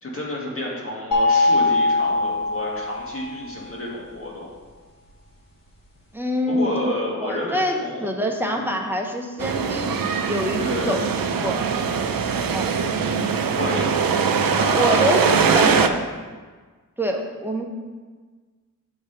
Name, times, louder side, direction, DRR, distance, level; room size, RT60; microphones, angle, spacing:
voice 1, 0.0-4.5 6.5-8.1 8.4-8.7 10.6-11.1 13.5-13.9 14.5-15.9, left 1 dB, 40° left, -4 dB, 1.9 m, -30 dB
sound 1, 1.1-3.3, left 2 dB, 75° left, 2.0 m, -21 dB
voice 2, 6.1-6.9 7.2-11.6 12.5-12.7 14.7-15.3 15.5-15.9 17.0-17.6, equal, 5° right, 1 dB, 0.8 m, -26 dB
sound 2, 9.4-15.9, right 6 dB, 85° right, 0.5 m, -22 dB
8.5 x 3.4 x 5.7 m, 1.4 s
wide cardioid pair, 80°, 34 cm